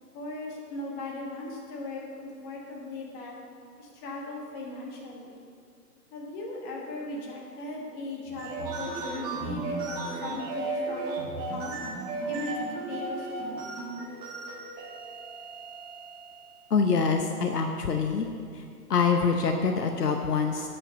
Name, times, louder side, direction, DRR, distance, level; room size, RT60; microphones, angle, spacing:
voice 1, 0.0-3.4 3.8-5.4 6.1-11.2 11.5-11.8 12.2-13.7, left 2 dB, 20° left, -1 dB, 1.4 m, -38 dB
sound 1, 8.3-16.5, right 3 dB, 25° right, 1.4 m, -35 dB
voice 2, 16.7-18.3 18.5-18.6 18.9-20.7, left 5 dB, 75° left, 4 dB, 0.9 m, -25 dB
9.1 x 6.2 x 6.7 m, 2.4 s
figure-of-eight pair, 130°, 48 cm